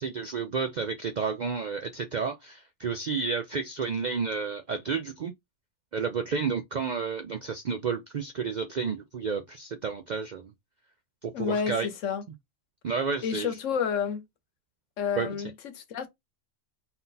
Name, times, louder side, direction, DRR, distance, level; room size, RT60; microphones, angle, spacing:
voice 1, 0.0-5.3 5.9-10.5 11.2-11.9 12.8-13.6 15.2-15.3, right 5 dB, 65° right, 0.4 m, -31 dB
voice 2, 11.3-12.2 13.2-14.2 15.0-16.1, left 7 dB, 75° left, 1.2 m, -30 dB
3.8 x 2.7 x 3.9 m
omnidirectional pair, 1.3 m